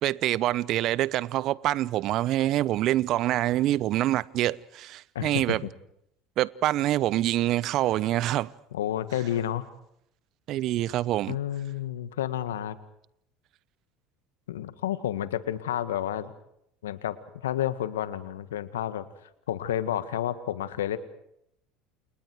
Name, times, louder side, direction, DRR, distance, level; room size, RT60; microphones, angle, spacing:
voice 1, 0.0-5.7 6.4-8.5 10.5-11.4, right 14 dB, 55° right, 0.9 m, -26 dB
voice 2, 5.1-5.6 8.7-9.7 11.3-12.8 14.5-16.3 16.8-17.2 17.4-19.1 19.5-21.0, left 11 dB, 85° left, 1.8 m, -30 dB
29.5 x 29.0 x 4.7 m
hypercardioid pair, 75°, 0 cm